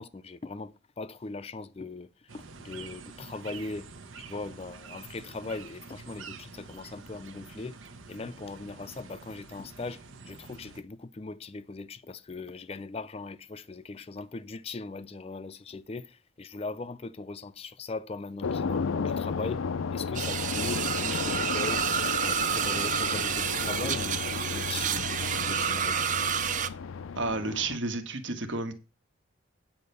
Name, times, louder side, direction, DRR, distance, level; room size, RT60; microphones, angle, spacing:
voice 1, 0.0-3.9 4.2-7.8 8.1-21.9 22.2-26.1, left 3 dB, 30° left, 0.4 m, -39 dB
sound 1, 2.3-10.8, right 4 dB, 85° right, 1.1 m, -47 dB
sound 2, 18.4-27.8, left 5 dB, 90° left, 0.5 m, -33 dB
sound 3, 20.1-26.7, right 8 dB, 40° right, 0.5 m, -29 dB
voice 2, 27.2-28.7, right 3 dB, 70° right, 1.4 m, -31 dB
9.4 x 4.5 x 6.8 m
head